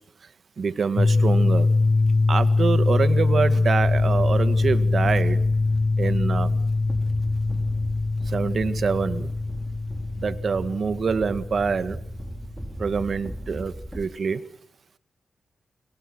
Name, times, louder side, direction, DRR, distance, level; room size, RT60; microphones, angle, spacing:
voice 1, 0.6-1.7 2.3-5.4 6.0-6.5 8.3-9.3 10.2-12.0 12.8-14.4, right 5 dB, 55° right, 1.9 m, -25 dB
sound 1, 1.0-12.8, left 3 dB, 30° left, 1.5 m, -23 dB
sound 2, 3.8-14.1, right 1 dB, ahead, 4.7 m, -37 dB
29.0 x 24.5 x 6.2 m
cardioid pair, 70°, 0 cm